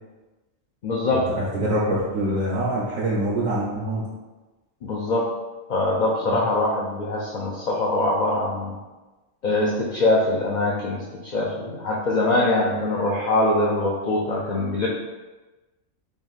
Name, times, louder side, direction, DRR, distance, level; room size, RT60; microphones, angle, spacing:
voice 1, 0.8-1.3 4.8-5.3 5.7-8.8 9.4-14.9, left 2 dB, 60° left, -3 dB, 0.4 m, -23 dB
voice 2, 1.4-4.1 6.2-6.4, right 1 dB, 85° right, -6 dB, 1.1 m, -25 dB
3.4 x 2.6 x 3.8 m, 1.2 s
omnidirectional pair, 1.3 m